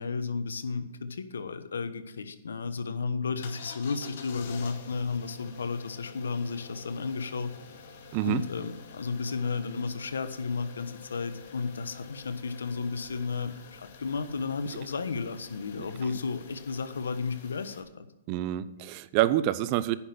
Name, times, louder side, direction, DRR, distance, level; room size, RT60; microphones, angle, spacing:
voice 1, 0.0-7.5 8.2-18.1, left 4 dB, 85° left, 12 dB, 1.1 m, -33 dB
sound 1, 3.4-17.8, left 5 dB, 60° left, 2.1 m, -48 dB
voice 2, 18.3-20.0, right 14 dB, 40° right, 17 dB, 0.6 m, -27 dB
9.9 x 6.1 x 8.4 m, 0.95 s
hypercardioid pair, 135°, 0 cm